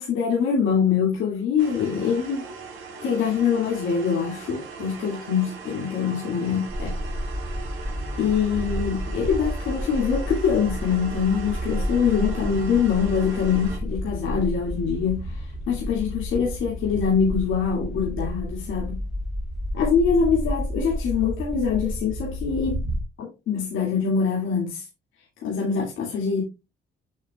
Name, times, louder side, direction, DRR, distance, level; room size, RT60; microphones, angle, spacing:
voice 1, 0.0-2.5 3.0-6.9 8.2-15.4 15.7-19.0 19.7-22.8 23.2-24.8 25.4-26.4, left 6 dB, 80° left, 2.4 m, -24 dB
sound 1, 1.6-13.8, right 5 dB, 80° right, 2.2 m, -39 dB
sound 2, 6.7-23.0, equal, 5° right, 2.3 m, -31 dB
8.4 x 6.2 x 2.3 m
cardioid pair, 90°, 20 cm